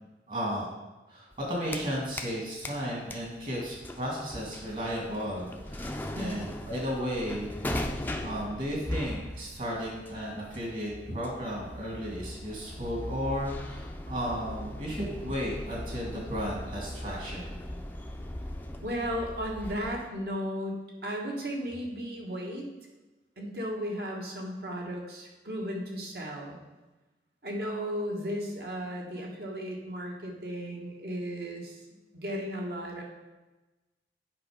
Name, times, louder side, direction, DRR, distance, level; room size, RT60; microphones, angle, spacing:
voice 1, 0.3-0.7 1.1-7.5 8.2-17.6, equal, 45° right, -3 dB, 2.3 m, -34 dB
Elevator going down, 1.3-2.4 2.6-20.1, left 1 dB, 10° left, 0.5 m, -39 dB
voice 2, 6.1-6.5 18.8-22.6 23.4-26.6 27.4-31.8 32.1-33.0, equal, 65° right, 0 dB, 1.7 m, -35 dB
8.5 x 5.5 x 5.1 m, 1.1 s
head